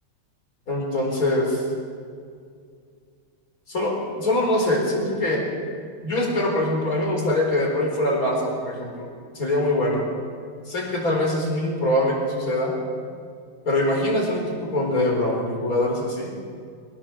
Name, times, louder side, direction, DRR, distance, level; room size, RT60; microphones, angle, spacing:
voice 1, 0.7-1.6 3.7-5.4 6.0-9.1 9.3-10.1 10.7-12.7 13.6-16.3, left 1 dB, 40° left, 0 dB, 4.9 m, -23 dB
22.5 x 18.5 x 7.5 m, 2.2 s
omnidirectional pair, 2.4 m